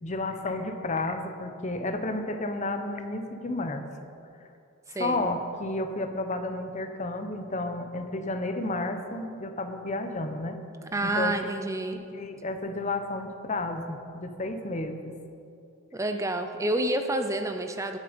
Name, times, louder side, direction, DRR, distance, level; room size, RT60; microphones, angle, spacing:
voice 1, 0.0-3.8 5.0-10.6 11.0-11.3 11.9-15.1, left 2 dB, 35° left, 7 dB, 0.9 m, -32 dB
voice 2, 4.9-5.2 10.9-12.0 15.9-18.0, right 1 dB, 15° right, 6 dB, 0.5 m, -28 dB
19.0 x 7.4 x 5.2 m, 2.6 s
head